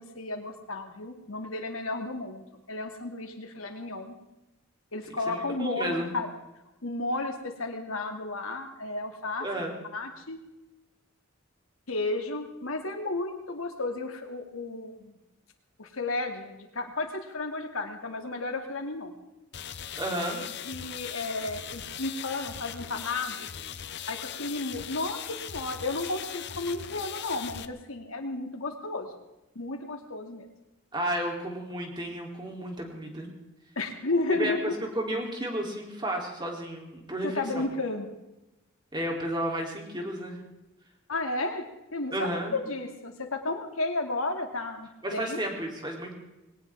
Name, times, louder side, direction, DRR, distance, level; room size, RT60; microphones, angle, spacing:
voice 1, 0.0-4.2 4.9-6.3 6.8-9.5 9.9-10.4 11.9-15.1 15.8-19.1 20.6-23.5 24.1-29.1 29.5-30.5 33.8-34.8 37.2-38.1 41.1-45.4, left 2 dB, 85° left, 4 dB, 2.5 m, -33 dB
voice 2, 5.3-6.1 9.4-9.7 20.0-20.4 30.9-33.3 34.3-37.7 38.9-40.4 42.1-42.6 45.0-46.1, right 1 dB, 20° right, 1 dB, 3.4 m, -32 dB
sound 1, 19.5-27.7, left 9 dB, 55° left, 0.8 m, -39 dB
21.5 x 18.0 x 3.7 m, 0.97 s
head